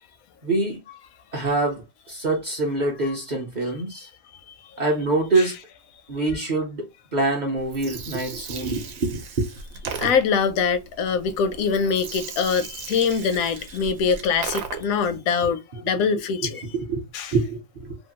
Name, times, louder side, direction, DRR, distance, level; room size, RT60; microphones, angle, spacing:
voice 1, 0.4-0.8 1.3-4.1 4.8-5.5 6.1-9.5 9.8-9.9 15.7-15.8 16.7-17.0 17.3-18.0, right 2 dB, 45° right, 0.6 m, -25 dB
Gurgling, 7.6-15.1, right 6 dB, 75° right, 1.0 m, -37 dB
voice 2, 10.0-16.6 17.1-17.3, left 6 dB, 80° left, 1.0 m, -23 dB
2.9 x 2.3 x 2.7 m
omnidirectional pair, 1.4 m